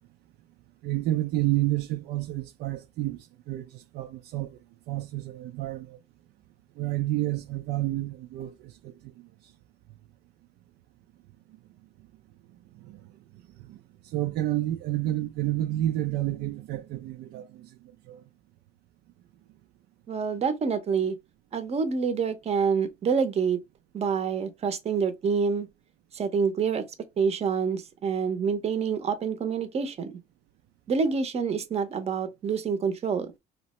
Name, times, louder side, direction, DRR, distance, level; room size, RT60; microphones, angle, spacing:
voice 1, 0.8-6.0 6.8-9.5 11.5-11.6 12.0-12.1 12.5-18.2, right 15 dB, 75° right, 0.4 m, -31 dB
voice 2, 20.1-21.2 21.5-23.6 23.9-25.7 26.1-26.8 27.2-30.2 30.9-33.3, right 6 dB, 40° right, 0.7 m, -27 dB
2.8 x 2.1 x 4.1 m
cardioid pair, 110°, 17 cm